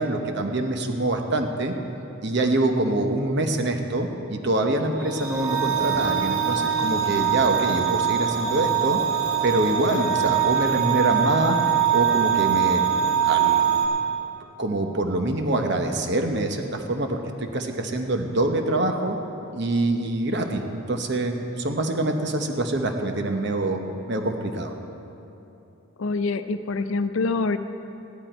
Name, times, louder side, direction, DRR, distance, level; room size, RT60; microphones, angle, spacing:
voice 1, 0.0-1.7 2.2-9.0 9.4-12.8 13.2-13.8 14.6-19.2 19.5-23.8 24.1-24.7, right 2 dB, 50° right, 4 dB, 1.0 m, -25 dB
sound 1, 4.9-13.9, right 8 dB, 15° right, 1.9 m, -23 dB
voice 2, 26.0-27.6, left 3 dB, 65° left, 11 dB, 0.5 m, -25 dB
15.0 x 11.5 x 4.4 m, 2.9 s
head